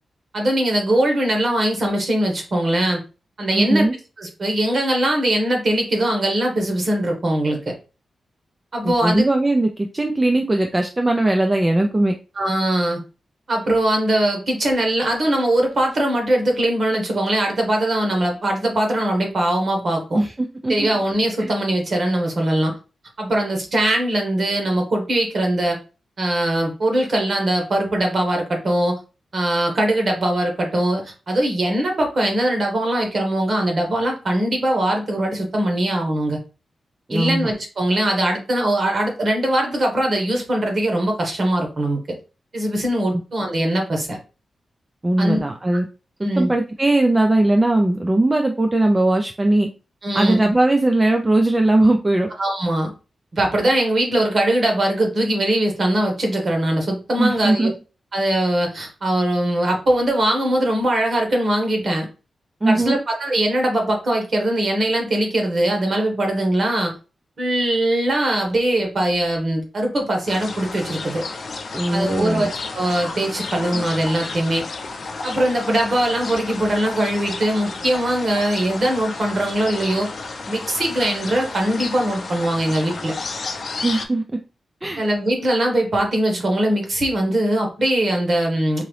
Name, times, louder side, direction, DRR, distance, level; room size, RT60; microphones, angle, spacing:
voice 1, 0.3-3.0 3.4-3.9 4.2-7.7 8.7-9.2 12.4-13.0 13.5-20.2 20.7-22.7 23.2-25.8 26.2-29.0 29.3-36.4 37.1-42.0 42.5-44.2 45.2-45.4 45.7-45.8 46.2-46.5 50.0-50.5 52.4-52.9 53.3-57.7 58.1-62.1 62.6-66.9 67.4-71.2 71.9-74.6 75.2-80.1 80.5-83.1 85.0-88.8, right 1 dB, 40° right, 2 dB, 1.2 m, -21 dB
voice 2, 3.5-3.9 8.8-12.1 20.1-20.9 21.4-21.5 37.1-37.5 45.0-45.8 46.2-49.7 50.1-52.3 57.2-57.7 62.6-63.0 71.7-72.5 83.8-84.2 84.8-85.0, right 2 dB, 15° right, 4 dB, 0.3 m, -19 dB
sound 1, 70.3-84.1, left 3 dB, 50° left, 0.5 m, -32 dB
3.8 x 2.8 x 3.1 m, 0.32 s
wide cardioid pair, 165°, 0 cm